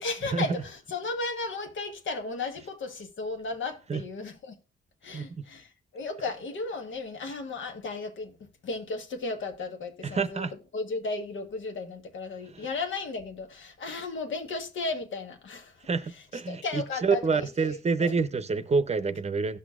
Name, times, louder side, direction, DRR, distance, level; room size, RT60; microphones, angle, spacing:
voice 1, 0.0-4.5 5.0-10.4 10.7-15.8 16.1-18.1, left 3 dB, 90° left, 1.3 m, -35 dB
voice 2, 5.1-5.4 10.0-10.5 12.5-12.7 15.9-19.6, right 4 dB, 35° right, 0.6 m, -28 dB
17.5 x 6.1 x 2.4 m
wide cardioid pair, 130°, 19 cm